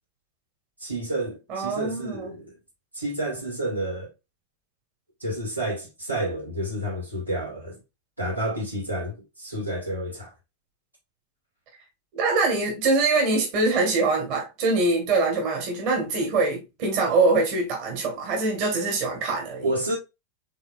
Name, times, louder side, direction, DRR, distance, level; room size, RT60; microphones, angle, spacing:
voice 1, 0.8-2.6 2.9-4.1 5.2-7.8 8.2-10.3 19.6-20.0, right 1 dB, 90° right, 2.2 m, -30 dB
voice 2, 1.5-2.3 12.1-19.7, right 3 dB, 45° right, 1.6 m, -24 dB
5.3 x 3.8 x 2.5 m
figure-of-eight pair, 90°, 0 cm